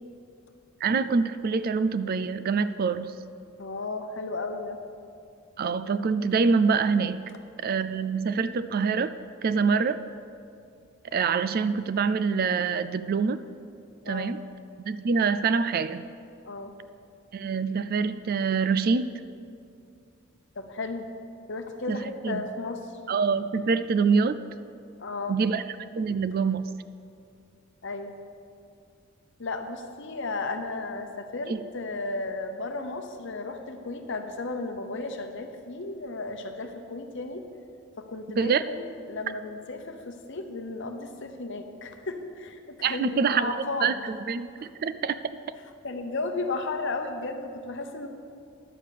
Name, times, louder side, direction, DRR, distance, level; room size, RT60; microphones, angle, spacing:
voice 1, 0.8-3.1 5.6-7.2 7.6-9.1 9.4-10.0 11.1-13.4 14.1-14.4 14.8-16.0 17.3-19.1 21.9-22.0 22.2-22.5 23.1-24.4 25.3-25.6 26.0-26.7 31.5-31.6 38.4-38.6 42.8-43.5 43.8-45.4, right 5 dB, 45° right, 13 dB, 0.3 m, -25 dB
voice 2, 3.6-4.8 14.0-14.4 16.4-16.7 20.5-21.1 21.5-23.0 25.0-25.4 27.8-28.1 29.4-37.5 38.0-44.1 44.6-44.7 45.8-48.1, left 3 dB, 55° left, 5 dB, 0.9 m, -34 dB
10.5 x 7.3 x 6.6 m, 2.4 s
head